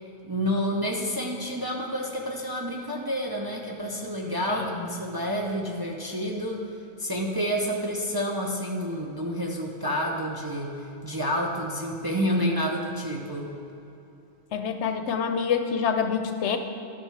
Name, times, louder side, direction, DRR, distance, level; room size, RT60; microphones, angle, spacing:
voice 1, 0.2-6.7 7.0-10.8 11.0-13.5, equal, 25° right, -1 dB, 0.5 m, -29 dB
voice 2, 14.5-16.6, left 6 dB, 75° left, 7 dB, 0.9 m, -26 dB
12.0 x 6.4 x 3.3 m, 2.8 s
omnidirectional pair, 1.2 m